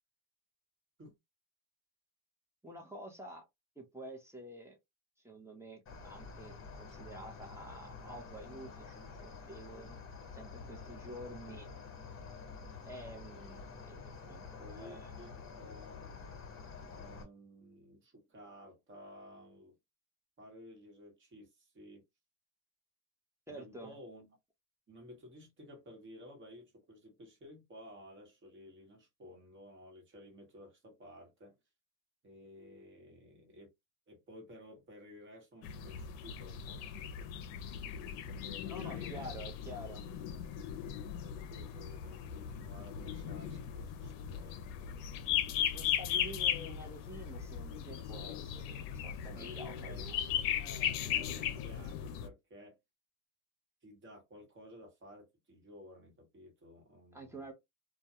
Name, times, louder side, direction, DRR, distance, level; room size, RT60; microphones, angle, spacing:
voice 1, 2.6-3.5 3.8-4.8 5.2-10.0 10.3-11.7 12.8-14.0 14.3-15.1 23.5-24.0 38.7-40.1 45.7-50.3 57.1-57.5, right 1 dB, 5° right, 0.7 m, -49 dB
Cricket, 5.9-17.2, left 5 dB, 30° left, 1.1 m, -49 dB
voice 2, 14.6-16.2 16.9-19.8 20.4-22.0 23.5-24.4 24.9-31.6 32.2-33.7 34.1-37.3 38.3-39.3 41.1-45.1 46.2-46.3 49.3-52.8 53.8-57.5, equal, 25° right, 1.1 m, -54 dB
sound 1, 35.6-52.3, left 9 dB, 65° left, 0.6 m, -38 dB
2.2 x 2.2 x 2.8 m
supercardioid pair, 115°, 44 cm